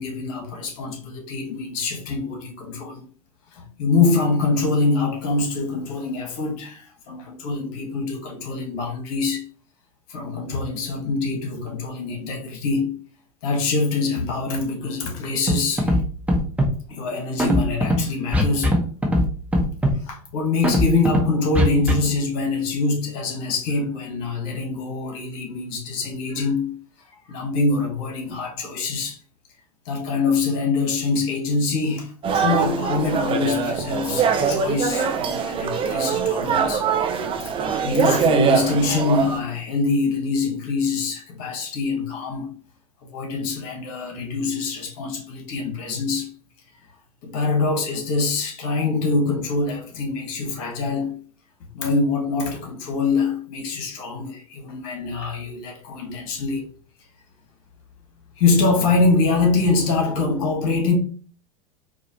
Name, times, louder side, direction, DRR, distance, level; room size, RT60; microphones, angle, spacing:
voice 1, 0.0-3.0 3.5-9.5 10.1-13.0 13.4-16.0 16.9-18.8 20.0-26.8 27.3-29.2 29.8-36.9 37.4-37.5 37.8-42.5 43.1-46.3 47.2-51.2 51.7-56.7 58.4-60.9, left 3 dB, 60° left, 1.4 m, -24 dB
Scratching (performance technique), 15.5-15.6 15.8-16.0 16.3-16.7 17.4-18.0 18.3-18.8 19.0-19.3 19.5-19.9 20.6-21.2 21.6-21.9, equal, 5° right, 1.1 m, -18 dB
sound 1, 32.2-39.4, right 6 dB, 25° right, 0.6 m, -23 dB
4.7 x 2.4 x 2.8 m
hypercardioid pair, 90°, 20 cm